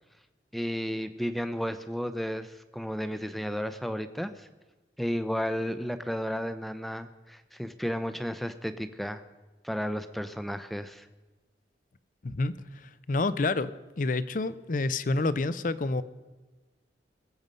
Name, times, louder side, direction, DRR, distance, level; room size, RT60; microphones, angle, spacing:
voice 1, 0.5-4.5 5.0-9.2 9.6-11.1, equal, ahead, 11 dB, 0.6 m, -33 dB
voice 2, 12.2-13.7 14.0-16.0, left 3 dB, 50° left, 16 dB, 0.5 m, -28 dB
20.5 x 7.8 x 5.4 m, 1.2 s
head